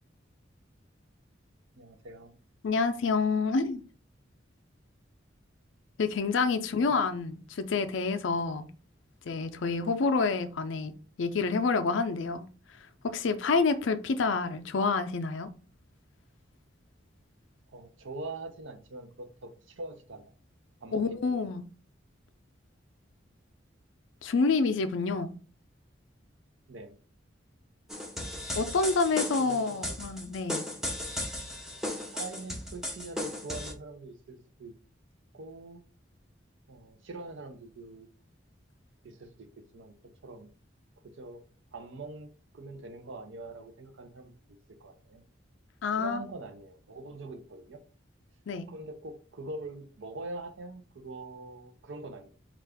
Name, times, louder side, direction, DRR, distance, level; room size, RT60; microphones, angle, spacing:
voice 1, 1.7-2.3 6.8-6.9 17.7-20.3 20.8-21.3 26.7-27.0 29.4-30.0 32.1-34.8 35.3-35.8 36.7-38.1 39.0-40.5 41.0-41.4 41.7-44.3 44.8-45.2 45.9-47.8 48.7-52.4, right 2 dB, 85° right, 0.6 m, -43 dB
voice 2, 2.6-3.8 6.0-8.7 9.3-12.5 13.0-15.5 20.9-21.6 24.2-25.3 28.6-30.6 45.8-46.2 48.5-48.7, left 4 dB, 80° left, 0.5 m, -28 dB
sound 1, 27.9-33.7, left 1 dB, ahead, 0.6 m, -36 dB
4.5 x 2.4 x 3.4 m
head